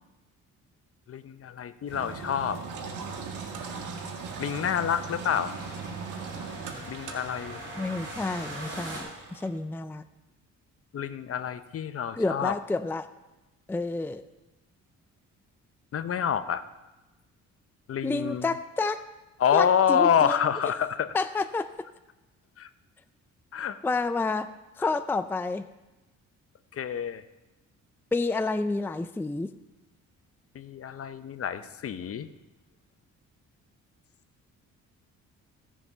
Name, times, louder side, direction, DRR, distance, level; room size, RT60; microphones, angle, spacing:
voice 1, 1.1-2.6 4.4-5.6 6.9-7.6 10.9-12.6 15.9-16.6 17.9-18.5 19.4-21.1 22.6-22.7 23.5-23.8 26.7-27.2 30.5-32.3, left 8 dB, 50° left, 12 dB, 0.8 m, -27 dB
sound 1, 1.9-9.0, right 2 dB, 40° right, 5.6 m, -43 dB
Engine, 1.9-9.5, right 5 dB, 80° right, 1.7 m, -40 dB
voice 2, 7.8-10.0 12.2-13.1 13.7-14.2 18.0-19.0 19.5-20.5 21.1-21.7 23.8-24.5 24.8-25.7 28.1-29.5, left 3 dB, 5° left, 11 dB, 0.4 m, -29 dB
16.0 x 7.3 x 5.5 m, 1.1 s
cardioid pair, 90°, 30 cm